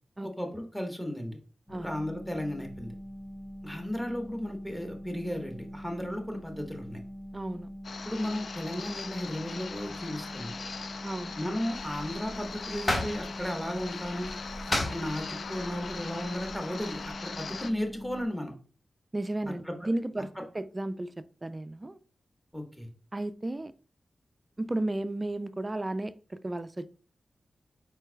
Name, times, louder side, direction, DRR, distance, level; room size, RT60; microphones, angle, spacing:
voice 1, 0.2-1.4 1.8-2.9 3.6-7.0 8.0-10.5 11.4-14.3 14.9-18.5 19.6-19.9 22.5-22.9, left 1 dB, 10° left, 1.3 m, -35 dB
sound 1, 1.7-18.3, equal, 10° right, 0.7 m, -43 dB
voice 2, 7.3-7.7 11.0-11.4 19.1-20.3 20.5-22.0 23.1-23.7 24.6-26.9, right 1 dB, 30° right, 0.3 m, -33 dB
sound 2, 7.8-17.7, left 5 dB, 70° left, 0.3 m, -41 dB
sound 3, 11.7-17.1, left 1 dB, 50° left, 1.4 m, -36 dB
4.5 x 4.4 x 2.3 m
cardioid pair, 55°, 0 cm